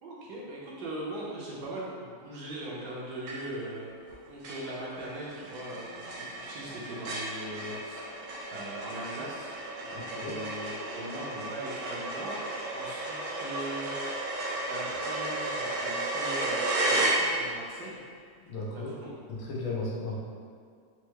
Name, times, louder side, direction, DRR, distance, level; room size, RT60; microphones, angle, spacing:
voice 1, 0.0-4.0 4.3-9.5 9.8-13.9 14.7-18.0 18.7-19.1, right 1 dB, 65° right, -5 dB, 1.2 m, -40 dB
sound 1, 3.3-3.7 4.1-4.2 4.4-17.7, right 2 dB, 90° right, 1.5 m, -33 dB
voice 2, 9.9-10.3 18.4-18.9 19.3-20.2, left 2 dB, 90° left, -4 dB, 1.6 m, -35 dB
4.4 x 2.1 x 4.5 m, 2.1 s
omnidirectional pair, 2.1 m